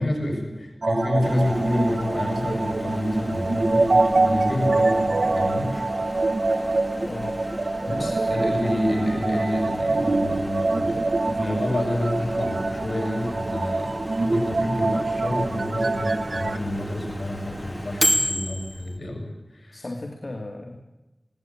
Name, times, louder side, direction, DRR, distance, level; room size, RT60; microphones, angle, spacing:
voice 1, 0.0-5.9 7.9-19.9, left 1 dB, 80° left, 3 dB, 6.3 m, -28 dB
sound 1, 0.8-16.6, right 2 dB, 80° right, 1.0 m, -25 dB
Microwave oven, 1.2-19.0, equal, 10° left, 2.9 m, -33 dB
voice 2, 6.9-7.4 7.8-8.2 19.1-19.2 19.7-20.8, left 2 dB, 65° left, 3 dB, 2.3 m, -36 dB
21.0 x 17.5 x 8.8 m, 1.0 s
wide cardioid pair, 45°, 0 cm